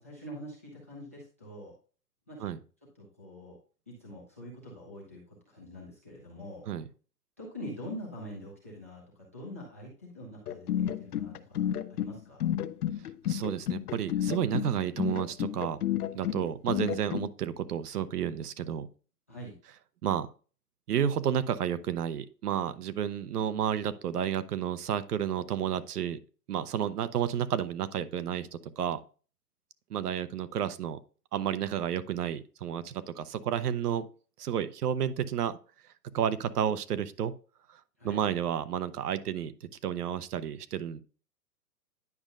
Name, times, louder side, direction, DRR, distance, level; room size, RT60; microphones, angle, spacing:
voice 1, 0.0-1.7 2.3-2.5 3.0-3.6 3.9-6.7 7.4-11.6 11.9-12.5 19.3-19.6 26.8-27.2 38.0-38.2, equal, 10° left, -5 dB, 0.4 m, -45 dB
sound 1, 10.5-17.3, left 11 dB, 70° left, 0.7 m, -31 dB
voice 2, 13.3-15.8 16.1-18.9 20.0-20.3 20.9-26.2 26.5-28.5 28.8-29.0 29.9-31.0 31.3-34.1 34.4-35.6 36.1-37.3 38.0-41.0, right 9 dB, 70° right, 13 dB, 0.8 m, -31 dB
9.7 x 5.2 x 2.4 m, 0.38 s
hypercardioid pair, 145°, 47 cm